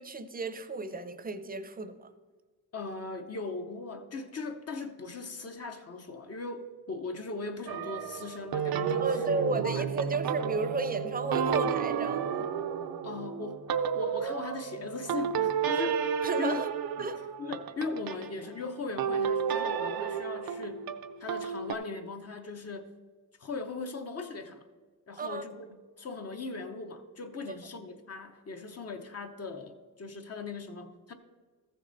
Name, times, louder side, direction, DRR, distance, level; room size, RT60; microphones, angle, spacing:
voice 1, 0.0-2.1 9.0-12.5 16.2-16.7 17.0-17.2 25.2-25.4 27.5-27.6, right 3 dB, 25° right, 11 dB, 0.6 m, -33 dB
voice 2, 2.7-9.9 13.0-13.6 13.9-16.1 16.4-16.6 17.0-17.1 17.4-20.8 21.2-22.9 23.4-24.6 25.1-25.7 26.0-31.1, left 3 dB, 40° left, 6 dB, 0.8 m, -39 dB
sound 1, 7.7-18.3 19.0-21.7, right 7 dB, 70° right, 0.6 m, -31 dB
14.5 x 6.6 x 4.0 m, 1.4 s
wide cardioid pair, 140°, 37 cm